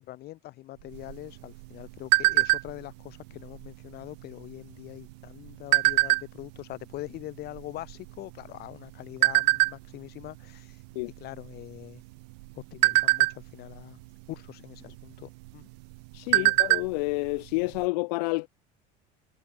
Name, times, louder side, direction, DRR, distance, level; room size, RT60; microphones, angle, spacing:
voice 1, 0.0-10.8 11.2-12.0 12.6-14.0 14.3-15.7 16.3-16.6, left 16 dB, 50° left, 3.6 m, -43 dB
sound 1, 0.9-2.9 3.4-3.7 3.9-4.3 5.0-6.6 7.2-7.3 7.5-8.7 9.2-9.7 10.2-10.5 10.8-11.0 11.4-12.0 12.4-13.8 14.9-15.0 15.5-15.6 15.9-17.0 17.2-17.3 17.7-17.8, right 26 dB, 90° right, 0.5 m, -23 dB
voice 2, 16.1-18.5, left 26 dB, 85° left, 0.6 m, -29 dB
cardioid pair, 135°, 20 cm